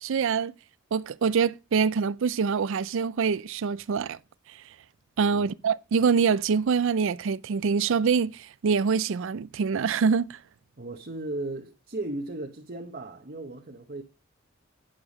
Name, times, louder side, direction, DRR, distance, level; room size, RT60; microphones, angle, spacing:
voice 1, 0.0-0.5 0.9-4.2 5.2-10.4, right 6 dB, 65° right, 0.4 m, -25 dB
voice 2, 10.8-14.0, right 2 dB, 45° right, 1.0 m, -36 dB
8.8 x 6.9 x 4.0 m
head